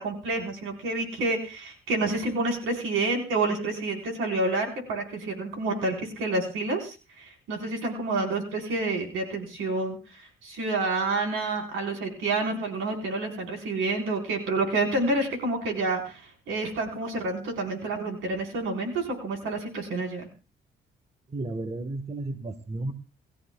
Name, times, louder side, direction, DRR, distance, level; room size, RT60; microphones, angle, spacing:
voice 1, 0.0-20.3, right 2 dB, 85° right, 2 dB, 4.4 m, -29 dB
voice 2, 21.3-22.9, right 2 dB, 30° right, 10 dB, 1.3 m, -33 dB
29.5 x 14.0 x 2.3 m, 0.34 s
cardioid pair, 90°, 20 cm